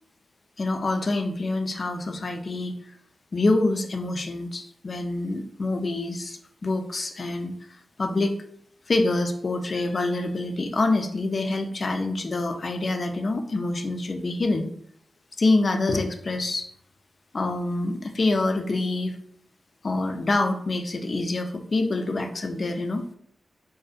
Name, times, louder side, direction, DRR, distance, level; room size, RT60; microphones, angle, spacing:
voice 1, 0.6-2.7 3.3-7.5 8.0-8.4 8.9-14.7 15.4-16.7 17.3-19.1 19.8-23.0, left 2 dB, 55° left, 5 dB, 0.3 m, -26 dB
2.6 x 2.1 x 2.4 m, 0.64 s
cardioid pair, 50°, 0 cm